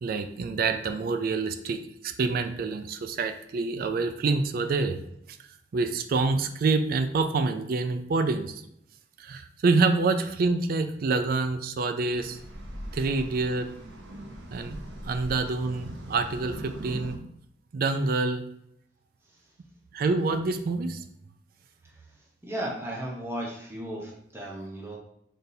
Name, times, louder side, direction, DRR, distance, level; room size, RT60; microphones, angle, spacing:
voice 1, 0.0-5.0 5.7-8.6 9.2-12.4 12.9-13.7 14.5-17.2 17.7-18.4 19.9-21.0, right 3 dB, 55° right, 8 dB, 0.3 m, -27 dB
sound 1, 12.1-17.2, right 1 dB, 90° right, 0.7 m, -41 dB
voice 2, 22.4-25.0, right 1 dB, 15° right, -3 dB, 0.7 m, -35 dB
4.1 x 3.4 x 2.7 m, 0.75 s
head